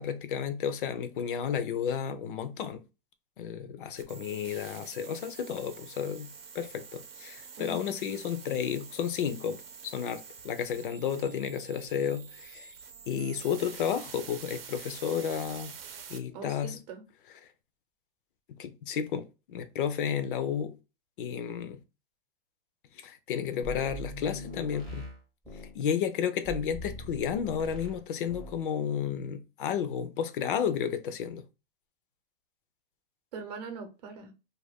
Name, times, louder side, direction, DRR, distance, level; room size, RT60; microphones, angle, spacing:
voice 1, 0.0-2.8 3.4-12.7 13.1-15.8 16.1-16.8 18.6-20.8 21.2-21.8 22.9-25.1 25.7-31.4, left 8 dB, 60° left, 0.5 m, -32 dB
sound 1, 4.0-16.2, right 7 dB, 80° right, 0.7 m, -47 dB
voice 2, 7.6-7.9 16.3-17.0 33.3-34.3, right 5 dB, 45° right, 0.7 m, -42 dB
sound 2, 23.6-25.8 26.5-28.0 28.3-28.6, equal, ahead, 0.5 m, -41 dB
2.5 x 2.2 x 3.3 m
hypercardioid pair, 155°, 29 cm